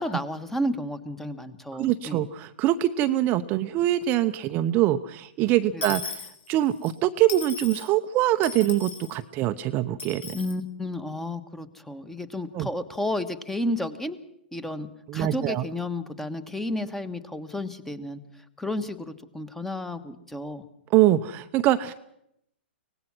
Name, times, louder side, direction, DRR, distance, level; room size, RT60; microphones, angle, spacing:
voice 1, 0.0-2.3 5.7-6.0 10.3-14.2 14.5-18.2 18.6-20.6, left 1 dB, 5° left, 12 dB, 1.3 m, -32 dB
voice 2, 1.7-6.2 6.5-10.4 12.5-12.7 15.1-15.6 20.9-21.9, right 13 dB, 30° right, 9 dB, 0.8 m, -24 dB
Dishes pots and pans / Coin (dropping), 5.8-6.9 7.3-7.9 8.4-9.2 10.0-10.5, left 6 dB, 70° left, 5.4 m, -37 dB
24.0 x 19.0 x 6.1 m, 0.75 s
hypercardioid pair, 130°, 6 cm